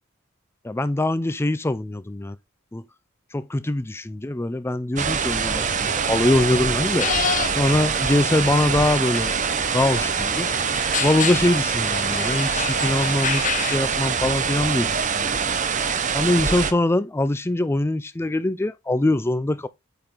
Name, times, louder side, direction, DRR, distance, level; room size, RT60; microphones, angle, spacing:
voice 1, 0.6-2.4 2.7-2.8 3.3-7.1 7.6-9.3 9.7-10.5 11.0-15.4 16.1-19.7, left 1 dB, 10° left, 0.4 m, -23 dB
sound 1, 5.0-16.7, right 6 dB, 40° right, 0.8 m, -24 dB
sound 2, 7.0-13.8, left 7 dB, 40° left, 0.7 m, -30 dB
8.7 x 3.8 x 4.5 m
head